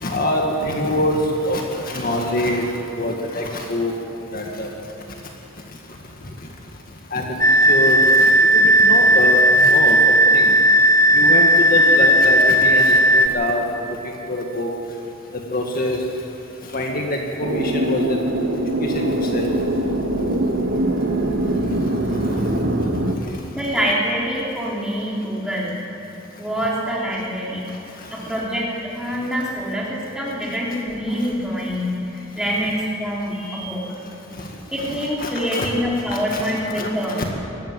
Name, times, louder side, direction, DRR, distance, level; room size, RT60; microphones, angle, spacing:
voice 1, 0.0-3.9 4.3-4.7 7.1-10.6 11.1-13.6 14.3-14.7 15.5-16.0 16.7-18.2 18.8-19.5 34.4-34.5 34.8-35.7 36.1-36.9 37.2-37.3, left 1 dB, 45° left, 1 dB, 1.9 m, -25 dB
sound 1, 7.4-13.3, right 1 dB, 15° left, 0.8 m, -14 dB
sound 2, 17.4-23.2, right 1 dB, 65° right, 1.6 m, -22 dB
voice 2, 23.5-25.8 26.4-27.7 28.1-33.9 34.7-37.2, equal, 5° right, -5 dB, 4.0 m, -25 dB
20.5 x 14.5 x 9.4 m, 3.0 s
head